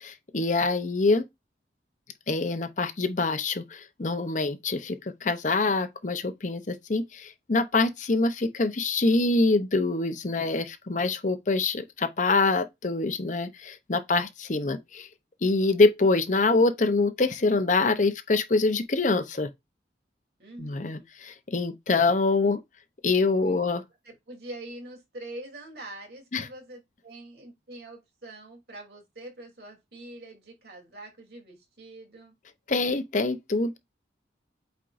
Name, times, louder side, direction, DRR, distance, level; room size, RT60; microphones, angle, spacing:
voice 1, 0.0-1.2 2.3-15.1 15.4-19.5 20.6-22.6 23.0-23.8 26.3-26.5 32.7-33.8, left 3 dB, 45° left, 0.7 m, -25 dB
voice 2, 20.4-21.1 23.4-23.6 24.0-32.3, right 1 dB, 60° right, 3.3 m, -44 dB
8.4 x 4.5 x 2.6 m
head